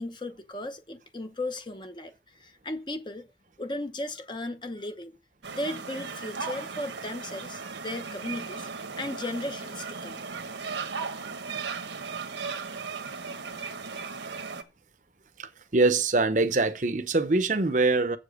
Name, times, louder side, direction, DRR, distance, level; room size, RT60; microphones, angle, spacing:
voice 1, 0.0-3.3 3.6-5.1 5.5-8.7 9.0-10.2, left 1 dB, 25° left, 0.8 m, -36 dB
sound 1, 5.4-14.6, right 5 dB, 85° right, 1.2 m, -36 dB
voice 2, 15.4-18.2, right 3 dB, 45° right, 0.8 m, -24 dB
7.6 x 7.0 x 6.3 m
head